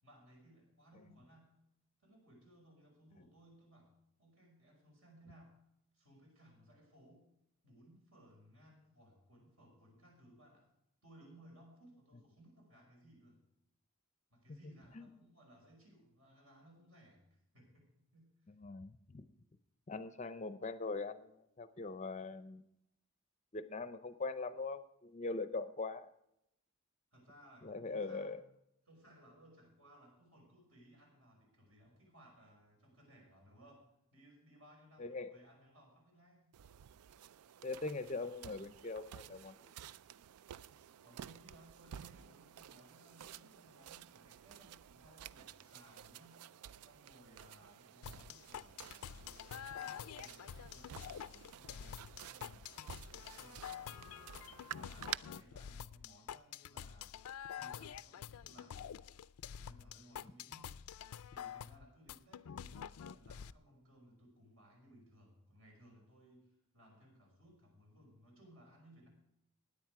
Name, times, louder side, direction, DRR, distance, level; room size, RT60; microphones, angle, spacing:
voice 1, 0.0-1.5 2.0-3.9 4.2-5.5 5.9-7.3 7.6-10.7 11.0-13.4 14.3-18.5 27.1-28.5 28.9-36.6 41.0-46.5 46.8-54.4 54.7-57.2 57.5-58.9 59.5-60.8 61.3-69.1, right 1 dB, 70° right, 0 dB, 5.5 m, -62 dB
voice 2, 18.5-19.3 19.9-22.6 23.5-26.1 27.6-28.4 35.0-35.3 37.6-39.7, left 3 dB, 30° left, 12 dB, 0.5 m, -42 dB
sound 1, 36.5-55.2, right 10 dB, 85° right, 0.4 m, -52 dB
sound 2, 48.0-63.5, left 8 dB, 85° left, 0.4 m, -48 dB
16.5 x 10.0 x 4.7 m, 0.82 s
head